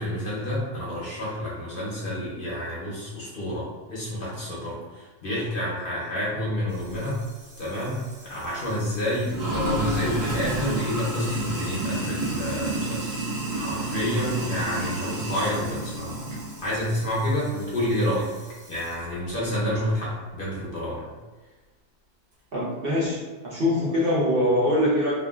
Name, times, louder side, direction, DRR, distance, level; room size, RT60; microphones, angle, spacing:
voice 1, 0.0-7.2 7.6-13.1 13.5-16.2 16.6-18.4 18.7-21.1, equal, 50° left, -7 dB, 0.7 m, -29 dB
Sink (filling or washing), 6.7-19.0, right 2 dB, 80° right, 1.4 m, -32 dB
voice 2, 22.5-25.1, left 1 dB, 60° right, -7 dB, 0.6 m, -23 dB
3.6 x 2.2 x 2.3 m, 1.3 s
omnidirectional pair, 1.7 m